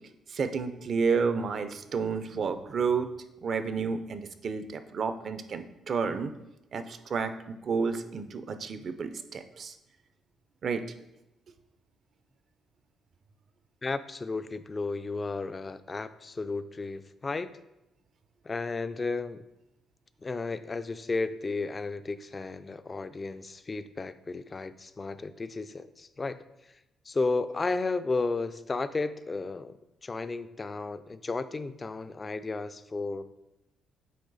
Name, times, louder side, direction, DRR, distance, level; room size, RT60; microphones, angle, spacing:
voice 1, 0.3-3.1 3.4-6.3 6.7-9.7 10.6-10.9, right 5 dB, 55° right, 10 dB, 0.5 m, -31 dB
voice 2, 13.8-17.5 18.4-19.4 20.2-26.4 27.1-33.3, left 3 dB, 30° left, 12 dB, 0.3 m, -33 dB
8.5 x 3.0 x 4.0 m, 0.92 s
cardioid pair, 90°, 0 cm